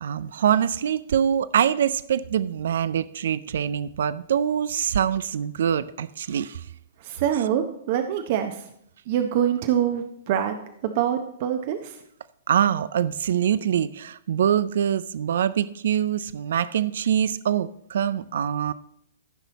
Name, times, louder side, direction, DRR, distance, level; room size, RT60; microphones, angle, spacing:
voice 1, 0.0-6.6 12.5-18.7, right 9 dB, 65° right, 17 dB, 0.4 m, -24 dB
voice 2, 7.0-8.6 9.1-10.6 10.8-12.0, right 10 dB, 50° right, 7 dB, 0.8 m, -25 dB
14.5 x 5.5 x 4.1 m, 0.71 s
hypercardioid pair, 115°, 0 cm